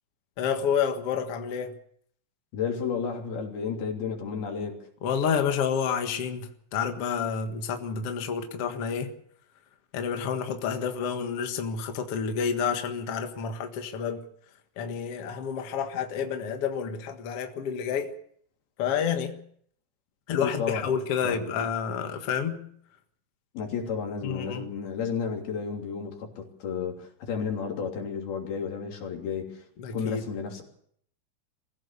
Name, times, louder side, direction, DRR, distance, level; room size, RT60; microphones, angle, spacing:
voice 1, 0.4-1.7 5.0-9.1 9.9-14.2 14.8-18.1 18.8-19.3 20.3-22.6 24.2-24.6 29.8-30.2, left 7 dB, 80° left, 1.3 m, -29 dB
voice 2, 2.5-4.9 20.3-20.9 21.2-21.6 23.5-29.6 29.9-30.6, left 6 dB, 55° left, 4.8 m, -32 dB
24.0 x 15.5 x 6.9 m
omnidirectional pair, 5.6 m